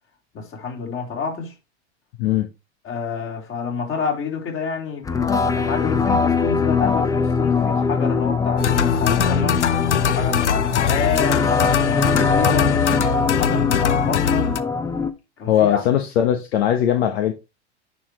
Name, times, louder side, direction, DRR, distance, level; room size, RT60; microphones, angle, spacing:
voice 1, 0.3-1.5 2.8-9.7 10.1-12.7 13.2-14.5 15.4-15.8, left 6 dB, 40° left, 3.7 m, -28 dB
sound 1, 5.1-15.1, left 4 dB, 10° left, 0.7 m, -22 dB
sound 2, 8.6-14.6, left 8 dB, 90° left, 0.6 m, -21 dB
voice 2, 15.5-17.3, left 10 dB, 65° left, 1.1 m, -19 dB
10.0 x 4.8 x 3.2 m
hypercardioid pair, 95°, 34 cm